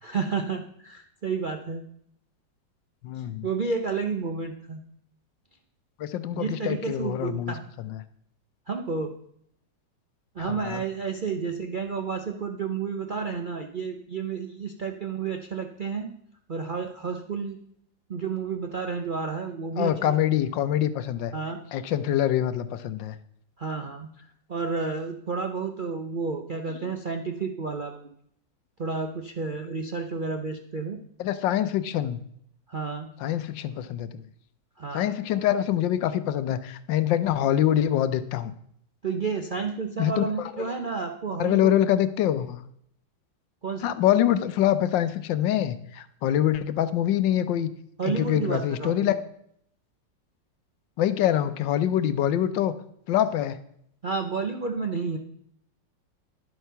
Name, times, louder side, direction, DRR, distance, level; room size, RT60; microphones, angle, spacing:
voice 1, 0.0-1.8 3.4-4.8 6.3-7.7 8.7-9.1 10.4-16.1 16.5-17.6 18.1-20.2 21.3-21.6 23.6-28.1 28.8-31.0 32.7-33.1 34.8-35.1 39.0-41.7 43.6-44.0 48.0-49.1 54.0-55.2, right 5 dB, 60° right, 4 dB, 0.5 m, -31 dB
voice 2, 3.0-3.5 6.0-7.6 7.8-8.0 10.4-10.8 19.8-21.3 21.7-23.1 26.9-27.0 31.2-32.2 33.2-34.2 34.9-38.5 40.0-40.7 41.4-42.6 43.8-47.7 48.1-49.1 51.0-52.7 53.1-53.6, left 11 dB, 80° left, 13 dB, 1.4 m, -25 dB
11.0 x 7.8 x 5.6 m, 0.69 s
omnidirectional pair, 2.0 m